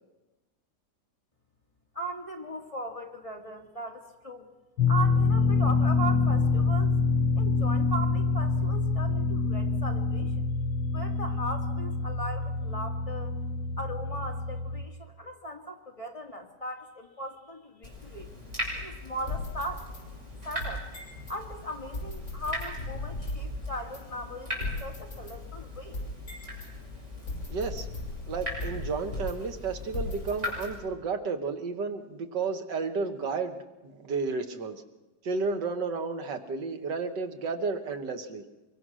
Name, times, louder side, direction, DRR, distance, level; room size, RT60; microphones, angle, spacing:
voice 1, 1.9-4.5 4.9-7.0 7.4-10.5 10.9-13.4 13.8-18.3 18.8-19.9 20.4-20.8 21.3-26.0, right 1 dB, 20° left, 1 dB, 2.2 m, -38 dB
sound 1, 4.8-14.8, left 4 dB, 85° left, 2.0 m, -26 dB
Water tap faucet / Drip, 17.8-30.7, left 1 dB, 40° right, 6.9 m, -39 dB
sound 2, 19.3-21.4 21.9-23.5 23.9-24.0 24.6-26.7 27.3-29.6 29.9-31.0, left 2 dB, 45° left, 6.9 m, -38 dB
voice 2, 27.5-27.9 28.3-33.6 33.8-34.8 35.2-38.4, right 4 dB, 80° right, 7 dB, 2.0 m, -32 dB
25.0 x 23.0 x 6.3 m, 1.1 s
omnidirectional pair, 1.9 m